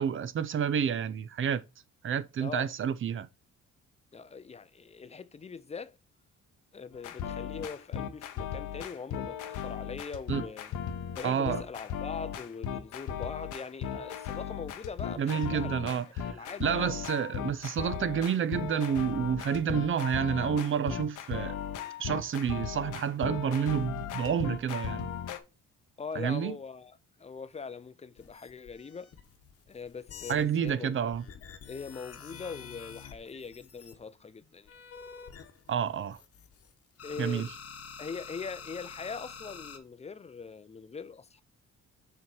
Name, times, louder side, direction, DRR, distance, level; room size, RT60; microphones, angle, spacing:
voice 1, 0.0-1.6 2.0-3.3 10.3-10.4 11.2-11.6 15.2-16.1 16.6-21.5 22.0-25.1 26.2-26.6 30.3-31.2 35.7-36.2 37.2-37.5, right 8 dB, 45° right, 0.6 m, -29 dB
voice 2, 2.4-2.7 4.1-6.0 6.7-10.7 11.1-17.1 26.0-29.1 29.7-30.9 31.7-34.7 37.0-37.5 38.0-41.4, left 5 dB, 20° left, 0.5 m, -42 dB
sound 1, 6.9-25.4, left 8 dB, 80° left, 0.9 m, -37 dB
sound 2, 28.2-30.7 31.1-34.0 34.7-36.7 37.0-39.8, left 6 dB, 50° left, 1.1 m, -48 dB
6.7 x 3.2 x 4.4 m
cardioid pair, 90°, 30 cm